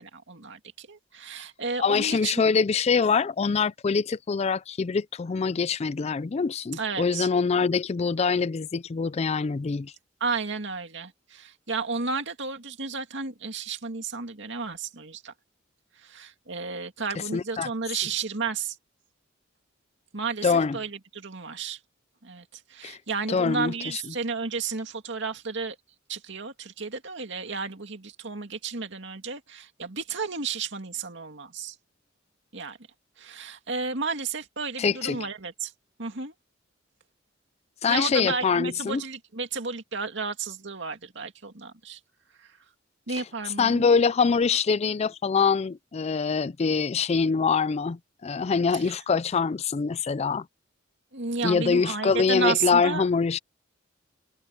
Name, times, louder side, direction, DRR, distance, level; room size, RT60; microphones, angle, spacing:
voice 1, 0.0-2.3 6.7-7.3 10.2-15.3 16.0-18.8 20.1-21.8 22.2-25.8 26.1-31.7 32.5-32.8 33.2-35.7 36.0-36.3 37.9-42.0 43.1-43.8 48.7-49.0 51.1-53.1, right 4 dB, 65° right, 2.5 m, -32 dB
voice 2, 1.8-9.9 17.3-17.7 20.4-20.8 22.8-23.0 23.3-24.0 34.8-35.3 37.8-39.0 43.6-50.5 51.4-53.4, left 5 dB, 35° left, 0.4 m, -24 dB
head